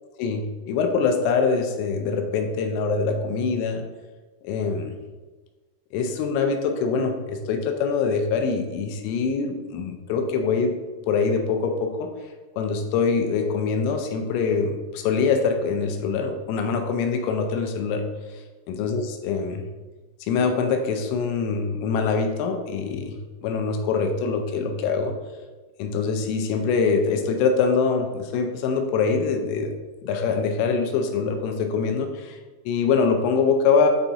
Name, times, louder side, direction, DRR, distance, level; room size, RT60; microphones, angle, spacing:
voice 1, 0.2-3.8 4.4-4.9 5.9-10.8 11.1-12.1 12.6-18.0 18.3-19.6 20.2-25.1 25.8-29.7 30.0-32.4 32.7-33.9, left 5 dB, 85° left, 5 dB, 3.2 m, -24 dB
8.9 x 3.6 x 4.2 m, 1.2 s
omnidirectional pair, 5.9 m